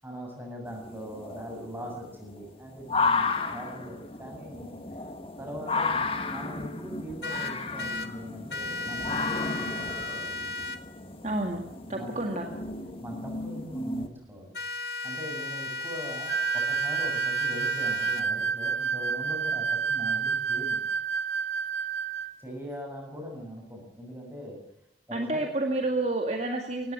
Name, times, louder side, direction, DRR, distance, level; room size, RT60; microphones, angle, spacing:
voice 1, 0.0-4.8 5.4-10.3 11.9-12.1 13.0-14.6 15.0-20.8 22.4-24.6 25.1-25.5, equal, 10° right, 0 dB, 7.8 m, -41 dB
sound 1, 0.7-14.1, left 3 dB, 30° left, 1.9 m, -33 dB
sound 2, 7.2-8.1 8.5-10.8 14.5-18.2, left 2 dB, 60° left, 1.7 m, -35 dB
voice 2, 11.2-11.6 11.9-12.5 25.1-26.9, right 2 dB, 40° right, 3 dB, 2.0 m, -29 dB
sound 3, 16.3-22.4, right 6 dB, 90° right, 0.9 m, -29 dB
18.5 x 16.0 x 9.0 m, 0.78 s
head